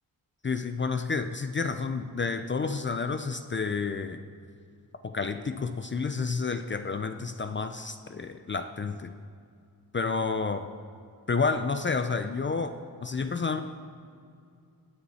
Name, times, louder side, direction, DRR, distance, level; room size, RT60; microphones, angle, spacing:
voice 1, 0.4-4.2 5.0-9.1 9.9-10.7 11.3-13.6, left 4 dB, 35° left, 9 dB, 0.4 m, -30 dB
18.5 x 10.0 x 4.2 m, 2.4 s
wide cardioid pair, 165°, 36 cm